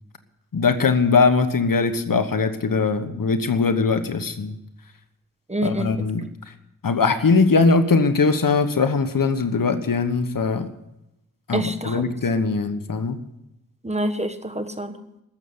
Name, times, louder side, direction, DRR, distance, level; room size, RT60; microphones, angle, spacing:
voice 1, 0.5-4.6 5.6-6.2 6.8-10.7 11.5-13.2, left 4 dB, 70° left, 9 dB, 1.3 m, -20 dB
voice 2, 5.5-6.1 11.5-12.0 13.8-14.9, right 1 dB, 20° right, 8 dB, 1.3 m, -26 dB
14.5 x 7.0 x 9.7 m, 0.88 s
wide cardioid pair, 65°, 35 cm